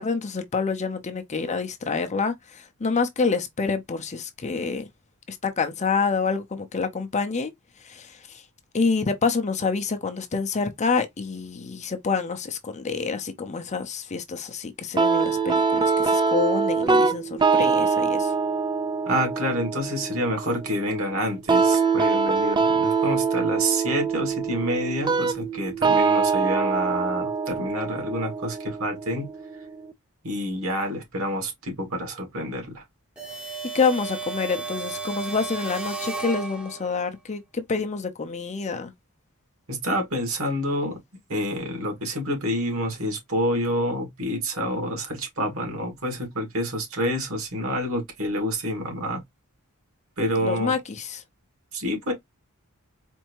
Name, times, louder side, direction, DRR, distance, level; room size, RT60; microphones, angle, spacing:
voice 1, 0.0-4.9 5.3-7.5 7.8-8.4 8.7-18.3 33.7-38.9 50.4-51.2, left 4 dB, 30° left, 0.6 m, -27 dB
sound 1, 15.0-29.9, right 5 dB, 20° right, 0.4 m, -24 dB
voice 2, 19.1-29.3 30.2-32.8 39.7-41.0 41.3-49.2 50.2-50.7 51.7-52.1, equal, 65° right, 1.9 m, -28 dB
sound 2, 33.2-37.1, right 4 dB, 5° right, 0.8 m, -33 dB
4.4 x 2.7 x 2.9 m
head